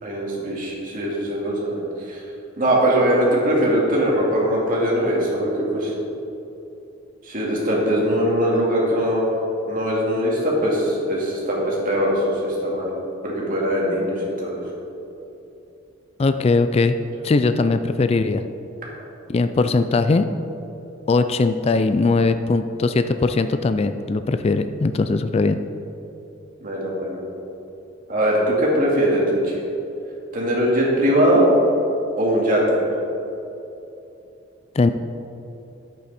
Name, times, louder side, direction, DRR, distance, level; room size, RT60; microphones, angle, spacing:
voice 1, 0.0-2.2 2.6-5.9 7.3-9.3 9.6-12.9 13.2-14.6 19.5-19.7 26.6-27.2 28.1-29.6 30.3-31.5 32.2-32.8, equal, 45° right, -4 dB, 2.3 m, -21 dB
voice 2, 16.2-17.0 17.2-18.4 19.3-20.2 21.1-25.6 34.8-34.9, left 3 dB, 30° left, 10 dB, 0.3 m, -20 dB
11.0 x 8.4 x 4.2 m, 2.9 s
head